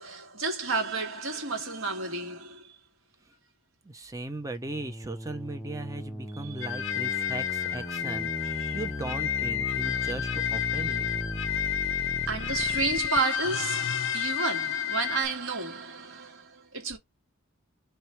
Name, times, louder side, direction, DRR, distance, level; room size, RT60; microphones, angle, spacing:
voice 1, 0.0-2.8 6.4-6.7 7.1-7.9 8.4-8.8 11.5-11.6 12.3-17.0, right 3 dB, 70° right, 1.9 m, -32 dB
voice 2, 3.8-11.1, right 2 dB, 15° right, 0.6 m, -38 dB
sound 1, 4.4-13.2, left 1 dB, 5° left, 1.0 m, -37 dB
sound 2, 6.6-15.3, left 10 dB, 60° left, 0.5 m, -30 dB
3.1 x 3.1 x 4.4 m
head